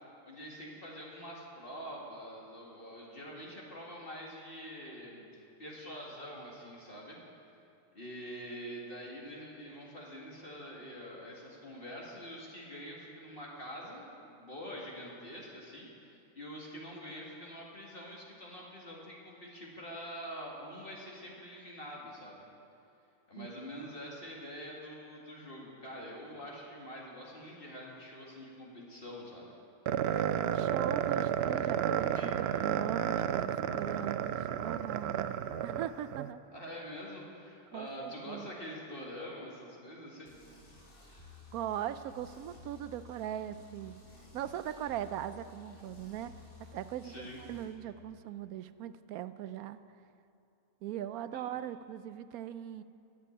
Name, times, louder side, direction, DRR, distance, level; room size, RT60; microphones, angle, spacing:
voice 1, 0.2-7.2 7.9-22.4 23.3-29.5 36.5-40.3 47.0-47.4 51.3-51.4, equal, 40° left, -3 dB, 2.1 m, -45 dB
voice 2, 23.4-23.7 30.5-36.4 37.7-38.5 41.5-43.9 44.3-46.3 46.6-49.8 50.8-52.8, right 11 dB, 85° right, 13 dB, 1.0 m, -40 dB
sound 1, 29.9-36.3, right 9 dB, 70° right, 0.6 m, -32 dB
sound 2, 32.2-33.5, right 1 dB, 25° right, 0.3 m, -54 dB
sound 3, 40.3-47.6, left 5 dB, 70° left, 3.4 m, -54 dB
13.0 x 7.5 x 9.7 m, 2.7 s
omnidirectional pair, 1.5 m